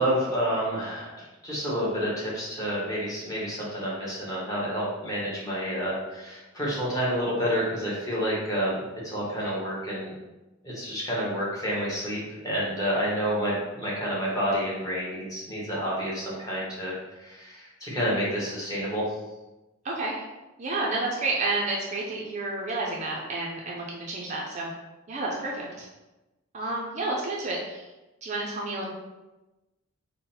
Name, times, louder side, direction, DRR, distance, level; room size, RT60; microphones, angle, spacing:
voice 1, 0.0-10.1 10.6-19.0, equal, 15° left, -7 dB, 1.1 m, -29 dB
voice 2, 19.8-20.2 20.6-24.7 25.1-25.9 26.5-27.8 28.2-28.9, right 2 dB, 35° right, -2 dB, 0.5 m, -30 dB
3.8 x 2.1 x 4.1 m, 1.1 s
head